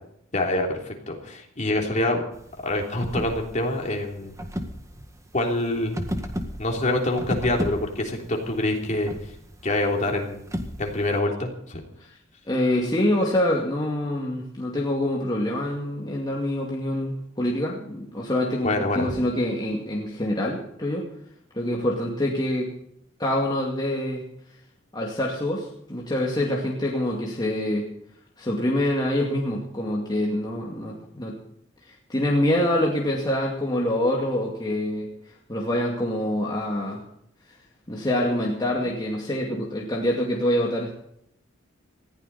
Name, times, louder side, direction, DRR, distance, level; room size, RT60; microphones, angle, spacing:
voice 1, 0.3-2.2 2.6-4.3 5.3-6.0 6.6-9.1 9.6-10.4 10.8-11.8 18.6-19.1, left 1 dB, 40° left, 1 dB, 3.4 m, -25 dB
sound 1, 2.3-11.2, equal, 15° right, 1.7 m, -35 dB
voice 2, 12.5-21.1 21.5-22.7 23.2-24.2 24.9-27.9 28.4-31.4 31.8-37.0 37.9-40.9, left 1 dB, 20° left, -2 dB, 2.4 m, -26 dB
19.5 x 15.5 x 4.2 m, 0.73 s
head